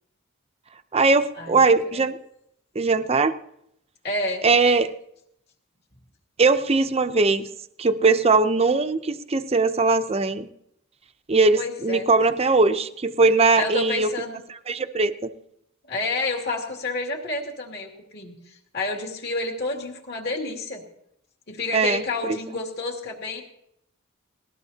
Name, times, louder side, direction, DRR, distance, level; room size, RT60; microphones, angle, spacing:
voice 1, 0.9-2.2 2.7-3.3 4.4-4.9 6.4-7.5 7.8-10.5 11.3-14.1 14.7-15.3 21.7-22.0, right 3 dB, 30° right, 10 dB, 0.6 m, -20 dB
voice 2, 4.0-4.4 11.5-12.1 13.6-14.4 15.9-20.8 21.5-23.4, left 2 dB, 50° left, 1 dB, 2.4 m, -29 dB
19.5 x 18.5 x 2.8 m, 0.78 s
head